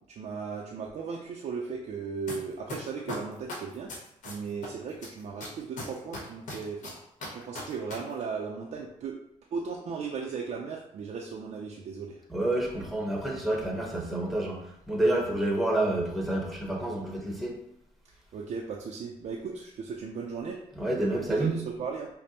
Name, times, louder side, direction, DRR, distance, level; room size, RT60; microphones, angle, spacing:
voice 1, 0.1-3.9 4.2-6.9 7.3-9.1 9.5-12.2 18.3-20.6 21.1-22.1, right 5 dB, 60° right, -1 dB, 0.5 m, -36 dB
sound 1, 2.3-2.4 2.7-4.7 5.0-8.0 8.2-8.3, left 2 dB, 70° left, 1.1 m, -38 dB
voice 2, 12.3-17.6 20.8-21.6, right 1 dB, ahead, -1 dB, 1.0 m, -28 dB
5.2 x 2.1 x 2.9 m, 0.76 s
cardioid pair, 90°, 13 cm